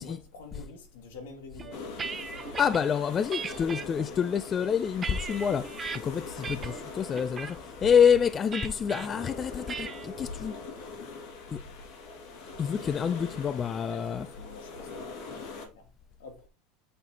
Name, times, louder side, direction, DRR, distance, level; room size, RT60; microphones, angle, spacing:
voice 1, 0.0-2.9 13.8-15.0 15.3-15.9 16.2-16.5, left 4 dB, 85° left, 2.1 m, -48 dB
sound 1, 1.6-2.8 3.3-3.8 4.5-6.0 6.4-6.8 7.2-7.5 8.5-9.1 9.7-10.1, right 5 dB, 20° right, 0.7 m, -37 dB
sound 2, 1.7-15.7, left 3 dB, 60° left, 2.0 m, -42 dB
voice 2, 2.6-5.7 6.0-10.5 11.5-11.6 12.6-14.3, left 7 dB, 25° left, 0.4 m, -27 dB
8.1 x 4.3 x 2.8 m
supercardioid pair, 135°, 0 cm